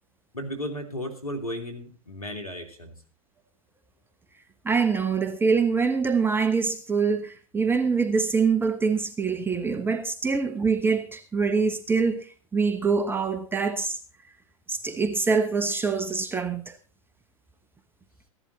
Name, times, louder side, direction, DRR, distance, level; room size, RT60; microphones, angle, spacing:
voice 1, 0.3-2.9, equal, 90° left, 2.9 m, -34 dB
voice 2, 4.6-14.0 14.7-16.8, right 5 dB, 10° right, 1.0 m, -24 dB
15.5 x 11.0 x 4.1 m
figure-of-eight pair, 95°, 18 cm